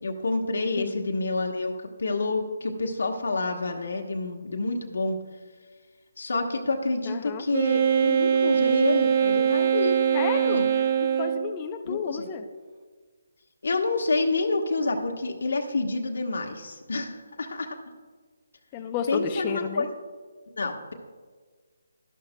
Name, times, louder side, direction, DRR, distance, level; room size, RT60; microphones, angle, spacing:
voice 1, 0.0-5.2 6.2-10.0 10.4-10.6 11.9-12.2 13.6-17.7 19.1-19.8 20.5-20.9, left 3 dB, 75° left, 3 dB, 1.2 m, -28 dB
voice 2, 7.1-7.5 10.1-10.8 11.2-12.5 18.7-19.9, left 7 dB, 20° left, 5 dB, 0.5 m, -32 dB
Wind instrument woodwind instrument, 7.5-11.6, right 8 dB, 40° right, 0.6 m, -22 dB
12.5 x 12.0 x 2.2 m, 1.5 s
hypercardioid pair, 165°, 0 cm